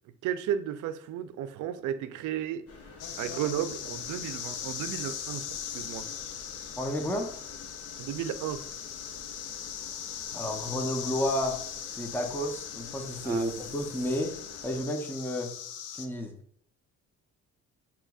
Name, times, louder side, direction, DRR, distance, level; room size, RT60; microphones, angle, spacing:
voice 1, 0.2-2.6 3.2-6.1 8.0-8.6 13.2-13.7, right 10 dB, 80° right, 0.5 m, -34 dB
sound 1, 2.7-14.8, left 3 dB, 50° left, 1.1 m, -49 dB
sound 2, 3.0-16.1, left 9 dB, 85° left, 0.6 m, -39 dB
voice 2, 6.8-7.3 10.3-11.6 11.9-14.3 14.6-15.5 16.0-16.3, equal, 5° left, 0.7 m, -31 dB
7.4 x 3.0 x 2.4 m
cardioid pair, 90°, 30 cm